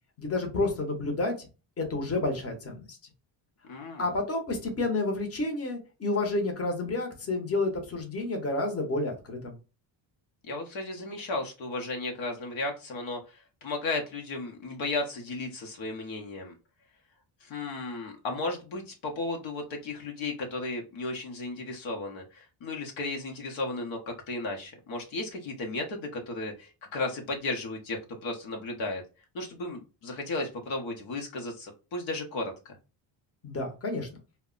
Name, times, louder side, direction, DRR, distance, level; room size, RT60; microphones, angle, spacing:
voice 1, 0.2-1.5 1.8-3.0 4.0-9.6 33.4-34.1, left 2 dB, 30° left, 2 dB, 0.9 m, -30 dB
voice 2, 3.7-4.1 10.4-16.5 17.4-29.0 29.3-32.8, left 2 dB, 70° left, 2 dB, 0.9 m, -34 dB
2.1 x 2.0 x 3.7 m, 0.31 s
cardioid pair, 110°, 47 cm